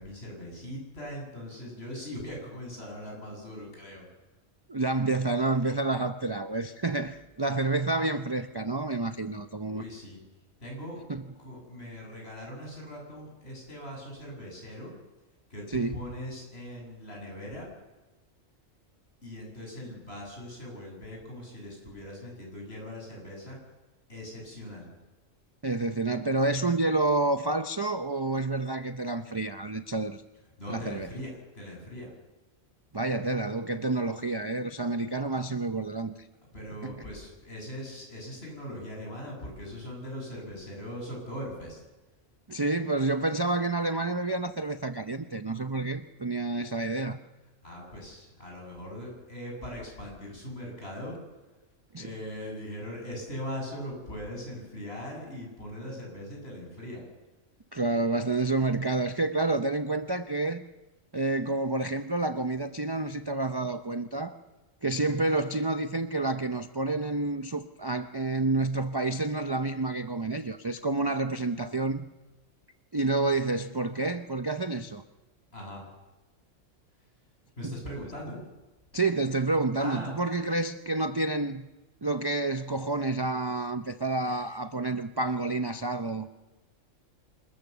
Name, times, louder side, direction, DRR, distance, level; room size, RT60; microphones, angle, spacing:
voice 1, 0.0-4.1 9.7-10.2 10.6-11.0 11.4-14.9 15.5-17.7 19.2-23.6 24.1-24.9 30.6-32.1 36.5-41.8 47.6-51.2 52.0-57.0 64.9-65.2 75.5-75.8 77.6-78.4 79.8-80.2 84.2-84.6, left 1 dB, 55° left, -1 dB, 8.1 m, -40 dB
voice 2, 4.7-9.8 11.1-11.2 15.7-16.1 25.6-30.2 30.7-31.1 32.9-36.3 36.8-37.0 42.5-47.2 51.9-52.0 57.7-60.6 61.1-64.3 64.8-72.1 72.9-75.0 77.6-77.8 78.9-81.7 82.0-86.3, right 2 dB, 25° right, 8 dB, 0.5 m, -29 dB
26.5 x 14.0 x 7.0 m, 1.1 s
omnidirectional pair, 1.3 m